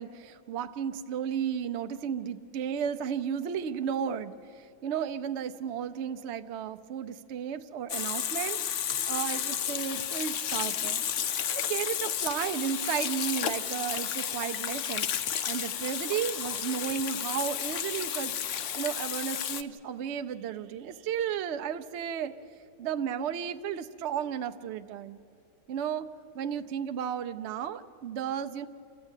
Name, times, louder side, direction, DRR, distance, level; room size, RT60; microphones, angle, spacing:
voice 1, 0.0-8.6 9.1-11.0 11.5-18.4 18.7-22.3 22.8-25.2 25.7-26.1 26.3-28.7, right 8 dB, 65° right, 9 dB, 0.7 m, -33 dB
Water tap faucet / Sink (filling or washing), 7.9-19.6, left 9 dB, 60° left, 0.8 m, -32 dB
28.0 x 14.0 x 8.9 m, 2.6 s
omnidirectional pair, 1.9 m